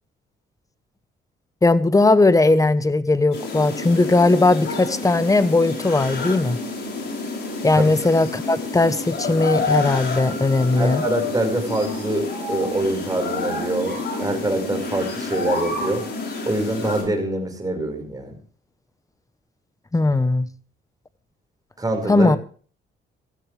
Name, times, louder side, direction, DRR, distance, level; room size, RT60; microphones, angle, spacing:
voice 1, 1.6-6.6 7.6-11.0 19.9-20.5 22.1-22.4, left 2 dB, 15° left, 1.1 m, -18 dB
sound 1, 3.3-17.0, left 3 dB, 60° left, 6.6 m, -29 dB
voice 2, 10.8-16.0 16.4-18.4 21.8-22.3, right 2 dB, 20° right, 5.3 m, -25 dB
16.5 x 14.0 x 3.4 m
cardioid pair, 90°, 20 cm